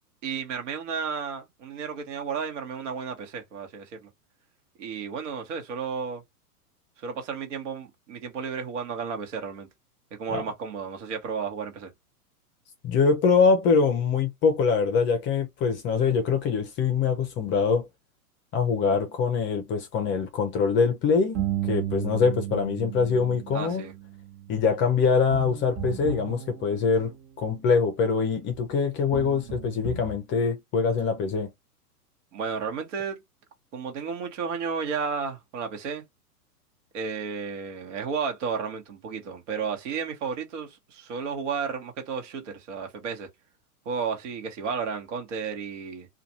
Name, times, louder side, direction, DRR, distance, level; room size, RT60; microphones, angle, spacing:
voice 1, 0.2-4.1 4.8-6.2 7.0-9.7 10.1-11.9 23.5-23.9 32.3-33.2 33.7-36.0 36.9-43.3 43.8-46.1, right 6 dB, 50° right, 1.2 m, -32 dB
voice 2, 12.8-17.9 18.5-23.8 24.5-31.5, left 5 dB, 25° left, 0.7 m, -24 dB
sound 1, 21.3-27.3 28.5-28.6 29.1-30.2, right 10 dB, 30° right, 0.8 m, -34 dB
2.5 x 2.4 x 2.8 m
hypercardioid pair, 110°, 46 cm